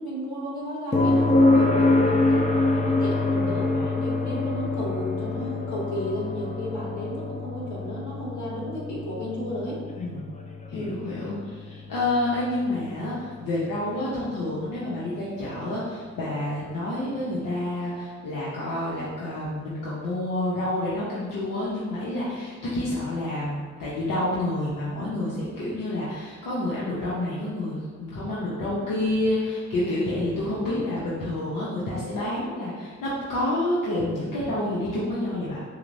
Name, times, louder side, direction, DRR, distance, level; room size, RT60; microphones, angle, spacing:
voice 1, 0.0-2.5 2.7-9.8 10.7-10.9, equal, 65° left, -5 dB, 1.3 m, -33 dB
sound 1, 0.9-14.8 17.0-17.1, left 2 dB, 25° left, 0.5 m, -26 dB
voice 2, 3.4-3.8 10.0-10.3 10.7-35.6, left 1 dB, 90° left, -8 dB, 0.7 m, -29 dB
5.7 x 2.1 x 2.6 m, 1.5 s
supercardioid pair, 40°, 32 cm